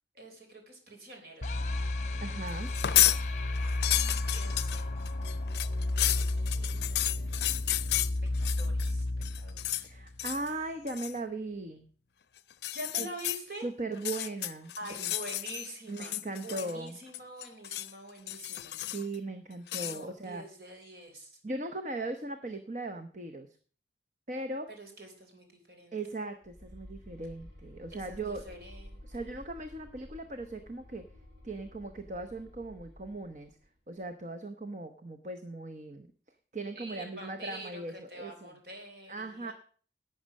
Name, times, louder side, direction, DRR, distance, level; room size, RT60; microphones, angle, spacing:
voice 1, 0.2-1.6 3.9-5.0 6.1-6.2 6.6-9.9 12.7-13.7 14.8-18.7 19.8-21.4 24.8-26.0 27.9-29.4 36.7-39.5, right 1 dB, 60° right, 3 dB, 3.8 m, -46 dB
sound 1, 1.4-10.5, left 2 dB, 40° left, 0.8 m, -32 dB
voice 2, 2.2-2.7 9.8-11.9 13.0-13.1 13.6-15.1 15.9-17.0 18.9-20.4 21.4-23.5 24.3-24.7 25.9-28.4 29.0-31.0 31.4-33.6 33.9-36.1 36.5-38.5 39.1-39.5, right 2 dB, 40° right, 7 dB, 0.9 m, -38 dB
sound 2, 2.7-3.2 3.6-8.9 9.2-9.9 10.2-10.5 10.9-11.2 12.5-13.4 13.9-15.7 16.0-16.9 17.1-17.9 18.3-19.1 19.7-20.0, left 15 dB, 65° left, 0.5 m, -31 dB
sound 3, 26.4-33.7, left 1 dB, 80° right, 4.6 m, -52 dB
12.0 x 8.8 x 6.4 m, 0.43 s
head